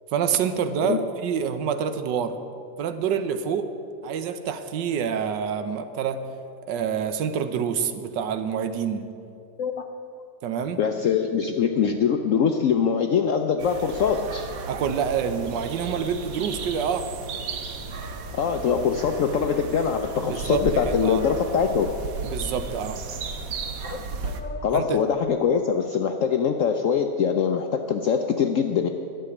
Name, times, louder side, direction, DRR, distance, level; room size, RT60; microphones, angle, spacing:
voice 1, 0.1-2.4 2.8-3.7 4.0-6.2 6.7-9.0 10.4-10.8 14.7-17.1 20.2-21.2 22.2-23.0 24.7-25.0, right 7 dB, 80° right, 9 dB, 1.4 m, -27 dB
voice 2, 10.8-14.5 18.3-21.9 23.8-28.9, left 7 dB, 65° left, 5 dB, 0.8 m, -23 dB
sound 1, 13.6-24.4, right 4 dB, 60° right, 1.2 m, -34 dB
11.5 x 6.9 x 9.6 m, 2.5 s
omnidirectional pair, 1.9 m